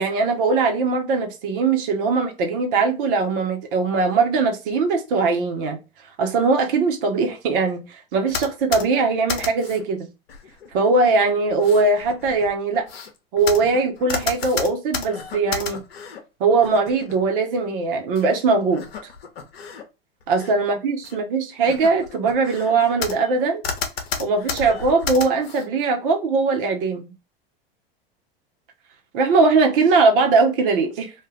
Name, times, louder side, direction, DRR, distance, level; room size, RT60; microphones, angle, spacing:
voice 1, 0.0-5.8 6.2-10.1 10.7-12.9 13.3-15.8 16.4-18.8 20.3-23.6 24.2-27.1 29.1-31.1, right 4 dB, 60° right, 1.0 m, -20 dB
sound 1, 8.3-9.8 10.3-10.9 11.5-16.2 16.6-17.2 18.1-18.3 18.7-19.8 20.2-20.6 21.0-21.2 21.6-23.4 23.6-25.7, left 6 dB, 75° left, 0.8 m, -32 dB
2.4 x 2.4 x 3.3 m
hypercardioid pair, 90°, 30 cm